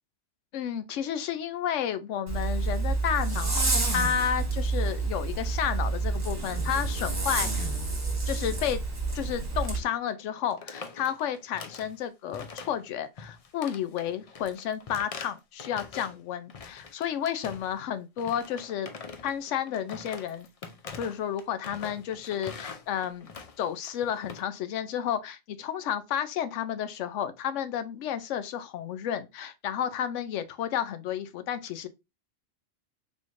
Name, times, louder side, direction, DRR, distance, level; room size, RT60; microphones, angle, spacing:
voice 1, 0.5-7.7 8.3-8.8 9.1-18.9 19.2-20.5 21.0-23.3 23.6-31.9, left 9 dB, 75° left, 0.9 m, -31 dB
Zipper (clothing), 2.3-9.8, right 3 dB, 30° right, 1.5 m, -29 dB
sound 1, 9.6-9.8 10.1-10.2 10.5-12.0 12.3-12.9 13.2-16.2 16.5-17.8 18.2-24.4, left 5 dB, 55° left, 0.4 m, -44 dB
4.1 x 3.1 x 2.5 m
omnidirectional pair, 1.3 m